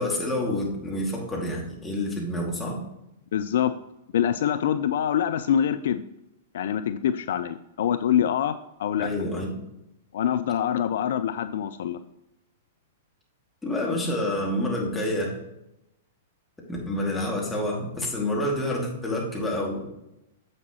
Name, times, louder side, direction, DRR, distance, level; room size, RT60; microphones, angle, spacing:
voice 1, 0.0-2.8 9.0-9.6 13.6-15.4 16.7-19.9, left 1 dB, 10° left, -3 dB, 2.4 m, -28 dB
voice 2, 3.3-3.7 4.1-6.0 6.5-9.1 10.1-12.0, left 9 dB, 55° left, 12 dB, 0.3 m, -25 dB
9.6 x 7.2 x 3.1 m, 0.89 s
figure-of-eight pair, 105°, 0 cm